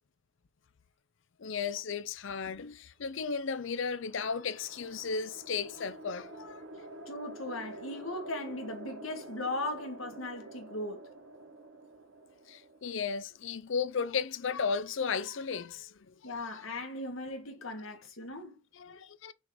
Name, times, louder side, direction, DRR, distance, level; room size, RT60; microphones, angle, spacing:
voice 1, 1.4-6.6 12.5-15.9 18.8-19.3, left 5 dB, 70° left, 0.5 m, -34 dB
sound 1, 3.3-13.8, right 1 dB, 75° right, 1.7 m, -48 dB
voice 2, 7.1-11.0 16.2-18.6, left 2 dB, 90° left, 1.8 m, -38 dB
6.2 x 3.7 x 4.7 m
head